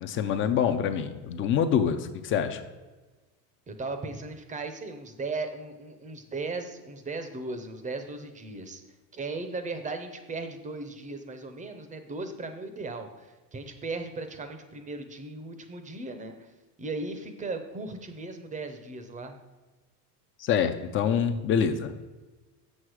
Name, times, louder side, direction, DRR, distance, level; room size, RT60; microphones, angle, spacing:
voice 1, 0.0-2.6 20.4-21.9, left 7 dB, 25° left, 9 dB, 0.4 m, -26 dB
voice 2, 3.7-8.8 9.1-16.5 16.8-19.4, right 3 dB, 15° right, 8 dB, 0.6 m, -37 dB
7.3 x 6.3 x 4.8 m, 1.2 s
supercardioid pair, 130°, 49 cm